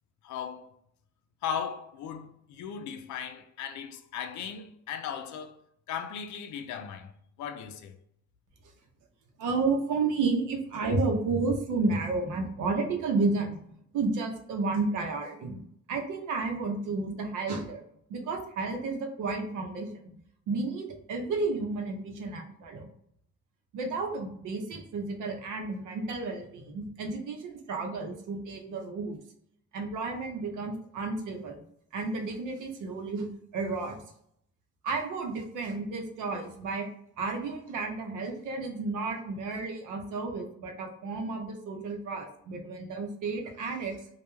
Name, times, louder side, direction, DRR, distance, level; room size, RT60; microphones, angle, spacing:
voice 1, 0.2-0.7 1.4-5.6 5.9-7.1 7.4-8.0, left 7 dB, 70° left, 0.4 m, -37 dB
voice 2, 9.4-13.6 13.9-15.6 15.9-17.8 18.1-19.9 20.5-22.9 23.7-29.2 29.7-31.6 31.9-33.3 33.5-34.0 34.8-36.9 37.2-44.0, right 3 dB, 85° right, 0.7 m, -31 dB
2.2 x 2.2 x 3.0 m
cardioid pair, 90°, 30 cm